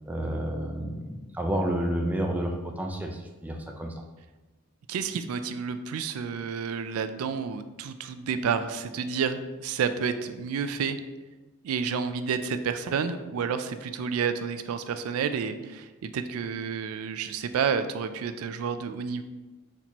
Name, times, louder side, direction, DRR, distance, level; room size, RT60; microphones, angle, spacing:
voice 1, 0.1-3.9, right 1 dB, 5° right, 2 dB, 0.4 m, -30 dB
voice 2, 4.9-11.0 11.6-19.2, right 6 dB, 85° right, 10 dB, 0.3 m, -30 dB
4.3 x 4.2 x 2.9 m, 1.2 s
head